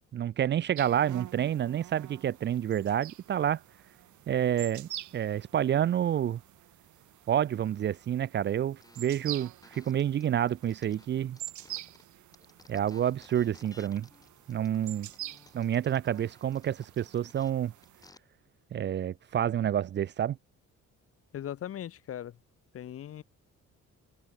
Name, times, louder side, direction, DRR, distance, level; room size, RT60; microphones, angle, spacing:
voice 1, 0.1-3.6 4.3-6.4 7.3-11.4 12.7-14.1 14.5-15.1 15.5-17.7 18.7-20.4, right 10 dB, 40° right, 0.5 m, -29 dB
sound 1, 0.8-18.1, right 14 dB, 85° right, 3.4 m, -47 dB
sound 2, 8.8-12.0 12.3-18.2, left 2 dB, 10° left, 4.4 m, -58 dB
voice 2, 21.3-22.3 22.7-23.2, left 10 dB, 50° left, 2.1 m, -39 dB
open air
cardioid pair, 175°, 29 cm